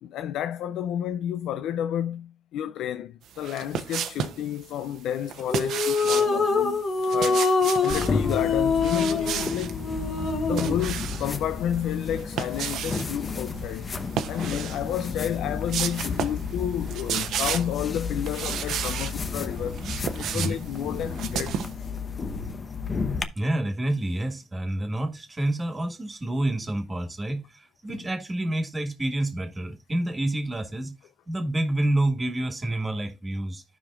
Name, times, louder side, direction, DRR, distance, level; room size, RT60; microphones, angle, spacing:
voice 1, 0.0-6.9 7.1-7.5 7.8-9.8 10.4-19.8 20.1-21.9 27.9-28.0, left 10 dB, 85° left, 0.4 m, -31 dB
sound 1, 3.4-4.4 5.3-6.3 7.0-8.1 8.8-9.7 10.2-11.3 12.1-13.1 14.1-14.8 15.2-15.3 15.7-16.5 16.7-17.8 18.3-19.2 19.6-21.7, right 9 dB, 80° right, 0.8 m, -32 dB
sound 2, 5.5-10.9, left 4 dB, 55° left, 1.3 m, -25 dB
sound 3, 7.9-23.2, left 4 dB, 35° left, 0.8 m, -32 dB
voice 2, 23.3-30.9 31.3-33.6, right 1 dB, 25° right, 1.7 m, -28 dB
14.0 x 5.1 x 2.4 m
cardioid pair, 90°, 0 cm